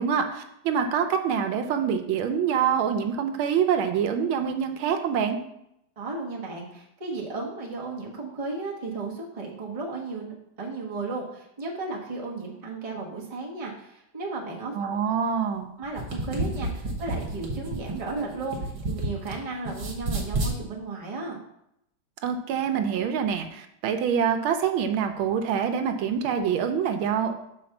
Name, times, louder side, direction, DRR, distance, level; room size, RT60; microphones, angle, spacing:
voice 1, 0.0-5.4 14.7-15.7 22.2-27.3, right 7 dB, 85° right, 6 dB, 1.5 m, -25 dB
voice 2, 6.0-15.0 15.8-21.4, right 3 dB, 20° right, -3 dB, 1.0 m, -34 dB
sound 1, 15.8-19.4 19.7-20.6, right 2 dB, 55° right, 1.8 m, -30 dB
5.6 x 4.2 x 5.8 m, 0.79 s
omnidirectional pair, 2.2 m